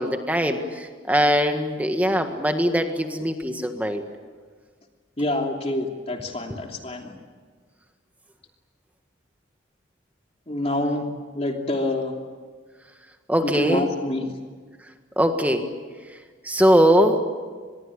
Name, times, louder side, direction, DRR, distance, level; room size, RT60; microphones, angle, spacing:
voice 1, 0.0-4.0 13.3-13.9 15.2-15.7 16.4-17.2, equal, 10° right, 5 dB, 1.7 m, -21 dB
voice 2, 5.2-7.1 10.5-11.0 11.3-12.2 13.4-14.3, left 1 dB, 30° left, 2 dB, 2.9 m, -27 dB
25.0 x 22.0 x 8.7 m, 1.5 s
head